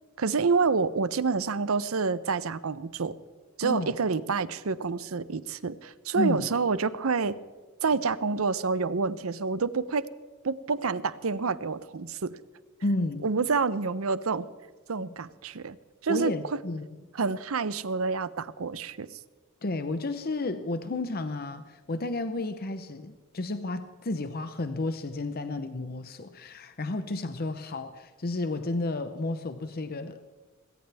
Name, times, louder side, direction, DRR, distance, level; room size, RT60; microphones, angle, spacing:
voice 1, 0.2-3.1 3.6-7.3 7.8-10.1 10.4-12.4 13.2-14.5 14.9-15.8 16.0-16.3 17.1-19.1, right 4 dB, 85° right, 16 dB, 0.7 m, -28 dB
voice 2, 3.6-3.9 6.1-6.5 12.8-13.3 16.1-16.8 19.6-30.2, left 2 dB, 45° left, 9 dB, 0.8 m, -32 dB
19.5 x 18.0 x 3.5 m, 1.4 s
head